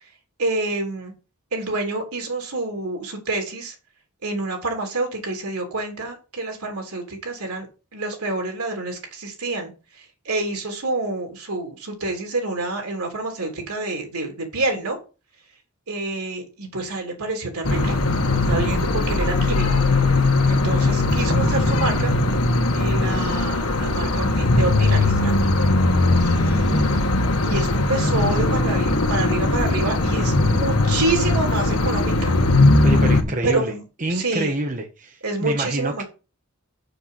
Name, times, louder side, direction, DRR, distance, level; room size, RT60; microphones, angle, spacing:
voice 1, 0.4-1.1 1.5-3.7 4.2-7.7 7.9-9.7 10.0-15.0 15.9-18.0 18.5-19.8 20.4-22.1 22.7-25.5 26.2-32.3 33.3-33.8 34.1-34.5 35.2-36.0, right 2 dB, 85° right, 2 dB, 3.4 m, -28 dB
sound 1, 17.6-33.2, left 2 dB, 85° left, 1.4 m, -19 dB
voice 2, 32.8-33.7 34.0-36.0, right 2 dB, 35° right, 4 dB, 1.1 m, -27 dB
6.8 x 6.6 x 5.8 m, 0.32 s
head